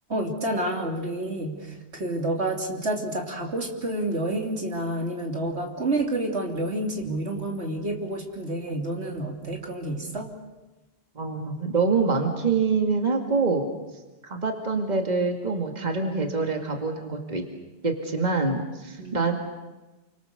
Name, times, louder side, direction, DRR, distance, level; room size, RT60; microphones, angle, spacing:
voice 1, 0.1-1.7 1.9-10.3 19.0-19.3, right 1 dB, 75° right, 2 dB, 3.2 m, -29 dB
voice 2, 11.2-13.7 14.2-17.4 17.8-19.3, right 4 dB, 40° right, 3 dB, 2.4 m, -25 dB
29.5 x 24.5 x 6.8 m, 1.1 s
omnidirectional pair, 1.1 m